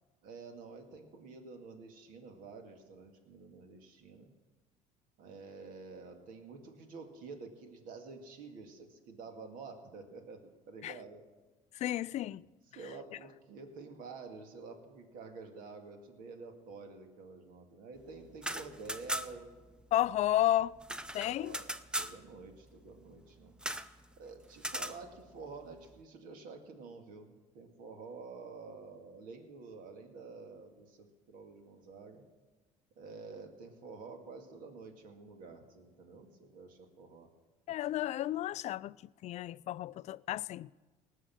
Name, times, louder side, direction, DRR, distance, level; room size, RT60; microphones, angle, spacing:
voice 1, 0.2-4.3 5.2-11.2 12.8-19.5 21.2-21.7 22.0-23.5 24.2-32.2 33.0-37.3, right 4 dB, 65° right, 2.1 m, -49 dB
voice 2, 11.7-12.4 19.9-20.7 21.1-21.6 37.7-38.9 39.2-40.7, left 13 dB, 50° left, 0.4 m, -32 dB
sound 1, 18.3-19.5 19.8-19.9 20.2-22.2 23.6-23.9 24.6-25.0, right 1 dB, 5° right, 0.7 m, -38 dB
18.5 x 6.4 x 7.6 m
supercardioid pair, 80°, 15 cm